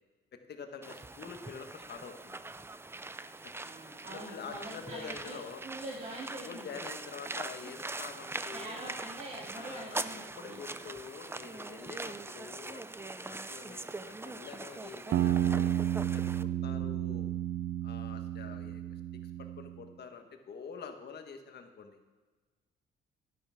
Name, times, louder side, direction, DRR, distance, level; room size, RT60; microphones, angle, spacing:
voice 1, 0.3-2.4 3.4-3.5 4.1-5.6 6.4-8.9 9.5-17.3 17.8-18.8 19.4-22.0, left 6 dB, 55° left, 6 dB, 1.4 m, -47 dB
sound 1, 0.8-16.4, right 2 dB, 10° right, 0.4 m, -42 dB
voice 2, 3.6-6.9 8.5-10.8, right 1 dB, 40° right, -6 dB, 2.7 m, -44 dB
sound 2, 15.1-19.8, right 11 dB, 75° right, 0.6 m, -32 dB
12.0 x 10.0 x 3.6 m, 1.3 s
cardioid pair, 90°, 20 cm